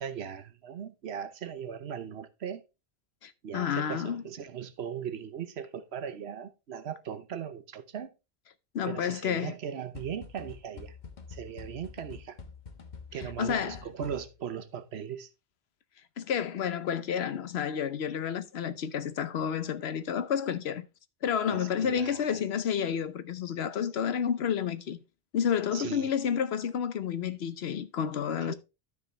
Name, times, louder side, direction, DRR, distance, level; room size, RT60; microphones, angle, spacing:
voice 1, 0.0-2.6 3.4-8.1 8.9-11.0 11.3-12.4 13.1-15.3 21.5-22.4 25.7-26.1 28.4-28.5, right 8 dB, 90° right, 1.1 m, -38 dB
voice 2, 3.2-4.2 8.7-9.5 13.4-13.8 16.2-20.9 21.2-25.0 25.3-28.5, left 8 dB, 80° left, 1.0 m, -30 dB
sound 1, 9.9-14.5, left 5 dB, 50° left, 1.1 m, -47 dB
12.5 x 4.8 x 3.2 m
omnidirectional pair, 1.0 m